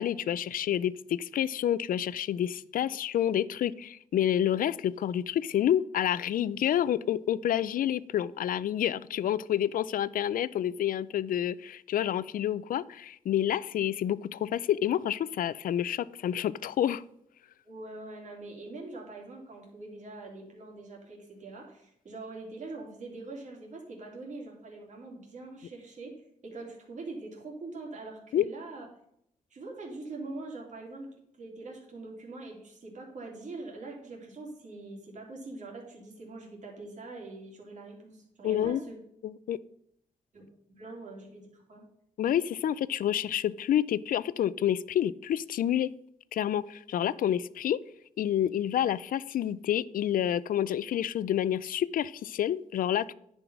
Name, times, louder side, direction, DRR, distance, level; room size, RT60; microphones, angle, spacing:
voice 1, 0.0-17.0 28.3-28.4 38.4-38.8 39.2-39.6 42.2-45.9 46.3-47.8 48.2-53.1, left 10 dB, 85° left, 19 dB, 0.4 m, -28 dB
voice 2, 17.6-26.1 26.4-28.9 29.5-31.1 31.4-39.0 40.3-41.8, right 3 dB, 60° right, -1 dB, 2.9 m, -43 dB
10.0 x 5.5 x 6.0 m, 0.74 s
wide cardioid pair, 105°, 14 cm